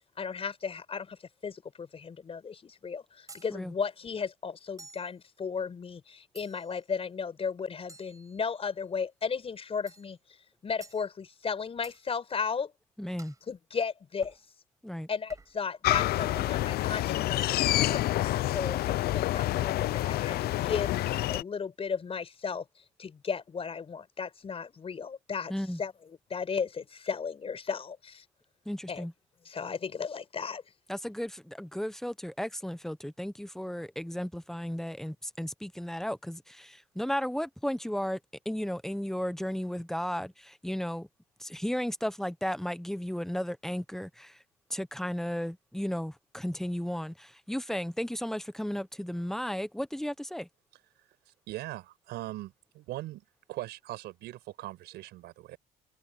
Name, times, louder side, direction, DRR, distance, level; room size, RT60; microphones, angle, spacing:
voice 1, 0.2-10.2 10.6-12.7 13.5-14.4 15.1-22.6 23.0-25.5 25.8-25.9 26.3-28.2 28.9-29.1 29.5-30.6, left 6 dB, 35° left, 5.4 m, -35 dB
sound 1, 3.3-3.5 4.8-5.1 6.4-6.8 7.9-8.8 9.9-10.1 10.8-11.0 11.8-12.0 13.2-13.4 14.2-14.4 15.3-15.6 16.3-16.5 17.3-17.9, right 3 dB, 20° right, 5.5 m, -52 dB
voice 2, 13.0-13.3 14.8-15.1 25.5-25.8 28.7-29.1 30.9-38.2 38.4-41.1 41.4-44.4 44.7-50.5, equal, ahead, 1.0 m, -34 dB
sound 2, 15.8-21.4, left 15 dB, 65° left, 0.5 m, -28 dB
voice 3, 51.5-55.6, right 16 dB, 80° right, 6.3 m, -40 dB
open air
cardioid pair, 110°, 17 cm